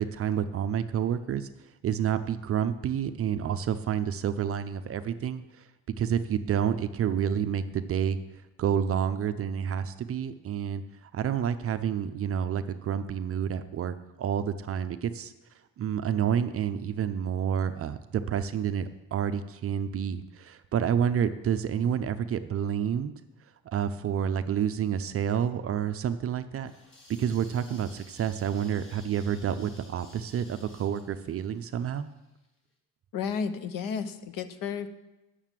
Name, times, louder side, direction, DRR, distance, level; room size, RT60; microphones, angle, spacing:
voice 1, 0.0-1.5 1.8-5.6 6.0-8.2 8.6-15.3 15.8-23.1 23.7-26.7 27.2-32.1, right 8 dB, 40° right, 10 dB, 0.5 m, -29 dB
sound 1, 26.7-32.5, left 1 dB, 35° left, 1.7 m, -55 dB
voice 2, 33.1-34.9, left 6 dB, 65° left, 11 dB, 0.8 m, -32 dB
9.1 x 6.7 x 7.4 m, 1.0 s
cardioid pair, 155°, 36 cm